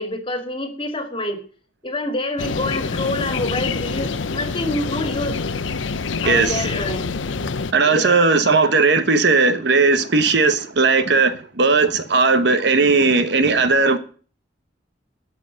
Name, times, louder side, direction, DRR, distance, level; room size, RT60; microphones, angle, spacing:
voice 1, 0.0-1.4 1.8-5.5 6.2-7.1 7.9-8.8, left 1 dB, 30° left, 2.1 m, -27 dB
sound 1, 2.4-7.7, left 4 dB, 85° left, 0.7 m, -26 dB
voice 2, 6.2-6.6 7.7-14.0, right 4 dB, 65° right, 1.2 m, -17 dB
12.5 x 6.0 x 8.1 m
head